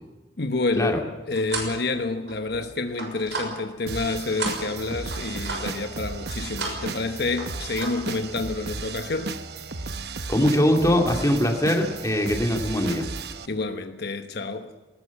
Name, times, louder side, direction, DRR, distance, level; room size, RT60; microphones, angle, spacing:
voice 1, 0.4-9.4 13.5-14.7, left 3 dB, 65° left, 1.1 m, -28 dB
sound 1, 1.0-1.8 2.2-4.0 4.4-5.8 6.3-6.9 7.2-7.9, right 3 dB, 85° right, 6.2 m, -34 dB
sound 2, 3.9-13.5, right 4 dB, 65° right, 1.1 m, -34 dB
voice 2, 10.3-13.1, equal, 20° left, 2.6 m, -22 dB
20.0 x 19.0 x 7.2 m
head